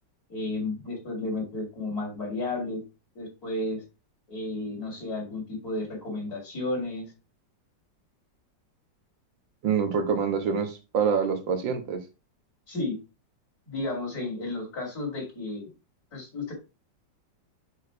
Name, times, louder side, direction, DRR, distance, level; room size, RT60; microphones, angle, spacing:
voice 1, 0.3-2.8 3.1-3.8 4.3-7.1 12.7-13.0 13.7-15.7 16.1-16.5, left 2 dB, 55° left, 0 dB, 3.3 m, -32 dB
voice 2, 9.6-12.0, right 6 dB, 90° right, 6 dB, 2.0 m, -26 dB
6.7 x 4.8 x 4.6 m, 0.28 s
omnidirectional pair, 2.0 m